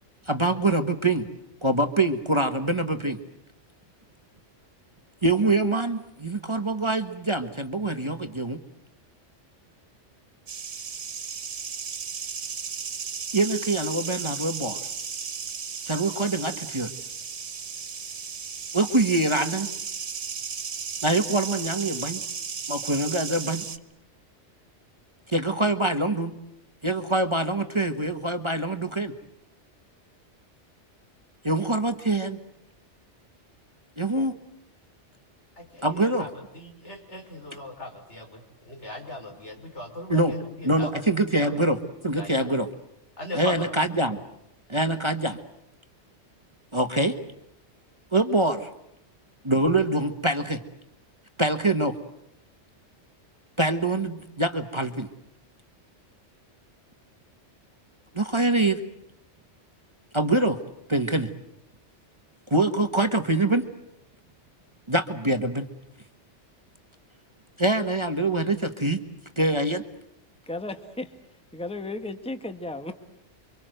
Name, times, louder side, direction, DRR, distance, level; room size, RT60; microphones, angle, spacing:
voice 1, 0.3-1.3 1.6-3.2 5.2-8.6 13.3-14.8 15.9-16.9 18.7-19.7 21.0-22.2 22.7-23.6 25.3-26.3 26.8-29.1 31.4-32.4 34.0-34.3 35.8-36.3 40.1-40.3 40.6-41.8 42.0-42.7 43.3-44.2 44.7-45.4 46.7-47.2 48.1-48.7 49.4-50.6 51.4-52.0 53.6-55.1 58.1-58.8 60.1-60.6 60.9-61.3 62.5-63.7 64.9-65.7 67.6-69.0 69.4-69.8, right 2 dB, 25° right, 7 dB, 1.5 m, -24 dB
sound 1, 10.5-23.8, right 6 dB, 85° right, 1.6 m, -35 dB
voice 2, 35.6-36.3 36.5-41.0 41.4-41.6 42.2-42.4 43.2-43.7, left 1 dB, 70° left, 3 dB, 5.5 m, -39 dB
voice 3, 70.5-71.1 71.5-72.9, left 2 dB, 5° left, 7 dB, 1.6 m, -34 dB
29.0 x 25.0 x 7.9 m, 0.78 s
omnidirectional pair, 1.2 m